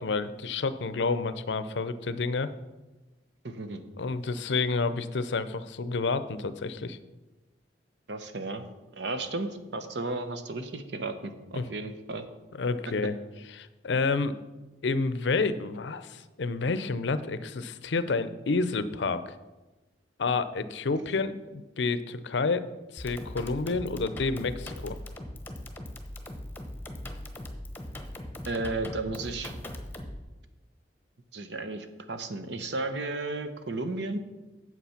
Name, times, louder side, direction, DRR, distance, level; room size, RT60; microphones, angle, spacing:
voice 1, 0.0-2.5 4.0-7.0 11.6-11.7 12.6-13.1 13.5-14.4 14.8-19.3 20.2-22.7 22.9-25.0, left 4 dB, 75° left, 13 dB, 0.6 m, -29 dB
voice 2, 3.4-3.8 8.1-8.6 8.9-12.3 28.5-29.5 31.3-34.2, right 2 dB, 70° right, 9 dB, 0.9 m, -34 dB
sound 1, 23.0-30.2, left 1 dB, 10° left, 0.9 m, -40 dB
8.3 x 7.5 x 5.8 m, 1.1 s
head